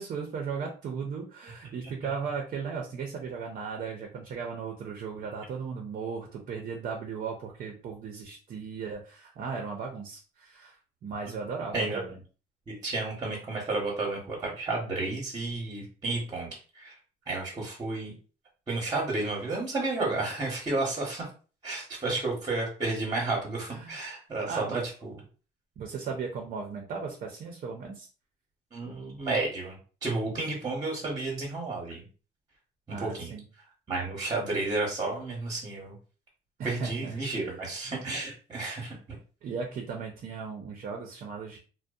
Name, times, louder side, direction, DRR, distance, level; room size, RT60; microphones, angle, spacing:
voice 1, 0.0-10.8 11.0-12.2 22.1-22.2 23.7-24.0 24.5-24.9 25.8-28.1 32.9-33.4 36.6-38.0 39.4-41.6, right 5 dB, 50° right, 2 dB, 0.6 m, -37 dB
voice 2, 12.7-16.9 17.3-18.1 18.7-21.3 21.6-24.6 25.0-25.1 28.7-32.1 33.0-33.3 33.9-35.9 36.6-39.2, right 3 dB, 25° right, -2 dB, 0.8 m, -32 dB
2.6 x 2.1 x 2.3 m, 0.37 s
cardioid pair, 110°, 17 cm